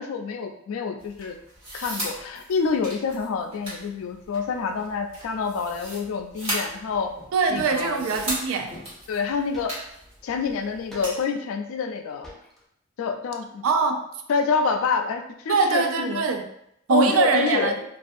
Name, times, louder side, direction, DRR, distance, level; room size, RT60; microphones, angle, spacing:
voice 1, 0.0-1.4 1.7-7.1 7.5-8.1 9.1-9.7 10.2-12.3 13.0-13.6 14.3-16.2 16.9-17.8, left 5 dB, 75° left, 6 dB, 0.3 m, -27 dB
sound 1, 1.0-11.2, equal, 30° right, 1.1 m, -37 dB
sound 2, 6.7-7.2 7.6-7.7 8.1-8.6 9.5-10.2 10.9-11.5 12.0-12.1 12.2-12.6, left 2 dB, ahead, 0.4 m, -45 dB
voice 2, 7.3-8.7 13.6-14.0 15.5-16.4 16.9-17.8, right 5 dB, 75° right, 5 dB, 0.4 m, -22 dB
2.5 x 2.3 x 2.4 m, 0.76 s
head